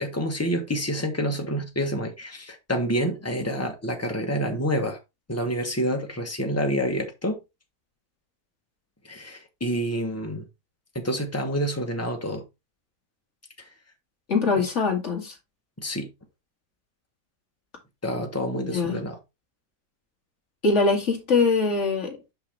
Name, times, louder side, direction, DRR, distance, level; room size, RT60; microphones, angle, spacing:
voice 1, 0.0-5.0 5.3-7.4 9.0-10.4 10.9-12.4 14.6-14.7 15.8-16.1 18.0-19.2, equal, 10° left, 0.9 m, -28 dB
voice 2, 14.3-15.3 18.5-19.0 20.6-22.3, left 4 dB, 45° left, 2.2 m, -23 dB
5.8 x 5.7 x 3.4 m
omnidirectional pair, 1.8 m